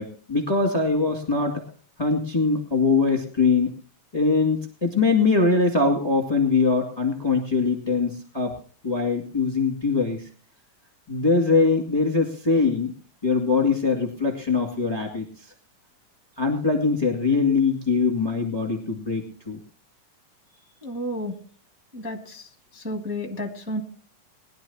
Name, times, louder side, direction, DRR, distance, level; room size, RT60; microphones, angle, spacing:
voice 1, 0.0-1.6 2.0-3.7 4.1-8.6 8.8-10.3 11.1-12.9 13.2-15.5 16.4-19.6, left 4 dB, 15° left, 2 dB, 1.8 m, -22 dB
voice 2, 20.8-21.3 21.9-22.5 22.7-23.8, left 1 dB, 5° right, 1 dB, 1.7 m, -31 dB
21.5 x 12.0 x 2.9 m, 0.41 s
omnidirectional pair, 3.7 m